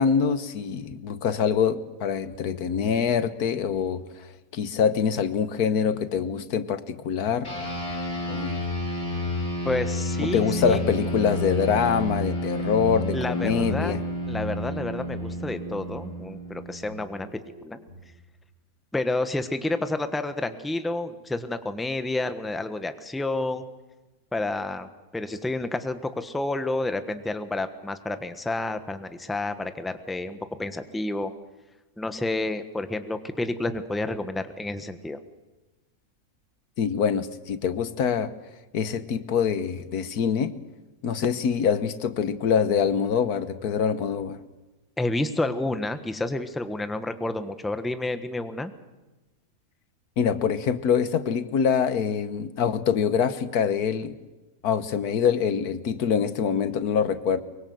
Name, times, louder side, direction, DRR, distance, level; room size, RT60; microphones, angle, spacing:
voice 1, 0.0-4.0 4.5-7.5 8.3-8.6 10.2-14.0 36.8-38.3 38.7-40.5 41.0-44.4 50.2-54.2 54.6-57.4, left 7 dB, 85° left, 13 dB, 1.6 m, -24 dB
sound 1, 7.4-17.2, equal, 45° left, 5.0 m, -30 dB
voice 2, 9.6-10.9 13.1-13.9 14.3-17.8 18.9-23.7 24.3-31.3 32.0-35.2 45.0-48.7, left 2 dB, ahead, 9 dB, 1.1 m, -30 dB
sound 2, 11.6-12.3 12.9-14.3 14.8-16.1 16.7-18.0, right 1 dB, 55° right, 6.7 m, -50 dB
24.0 x 23.5 x 7.9 m, 1.1 s
omnidirectional pair, 1.6 m